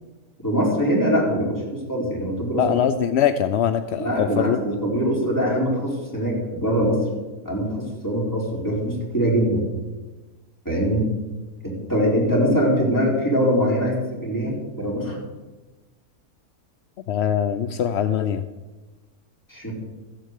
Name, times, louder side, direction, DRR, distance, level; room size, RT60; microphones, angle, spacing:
voice 1, 0.4-2.6 4.0-7.0 7.4-9.7 10.6-11.1 11.6-15.2 19.5-19.7, equal, 10° left, -4 dB, 4.3 m, -23 dB
voice 2, 2.6-4.6 17.1-18.4, left 9 dB, 65° left, 11 dB, 0.6 m, -22 dB
14.0 x 7.8 x 8.2 m, 1.2 s
omnidirectional pair, 1.6 m